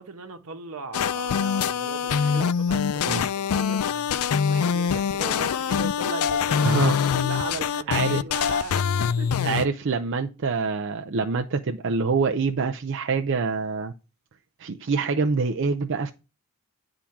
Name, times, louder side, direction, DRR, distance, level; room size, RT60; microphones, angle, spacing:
voice 1, 0.0-9.5, right 3 dB, 85° right, 1.1 m, -38 dB
sound 1, 0.9-9.7, left 7 dB, 80° left, 0.4 m, -24 dB
voice 2, 6.6-7.0 7.9-8.2 9.4-13.9 14.6-16.1, right 4 dB, 60° right, 0.5 m, -25 dB
10.0 x 3.8 x 5.8 m
head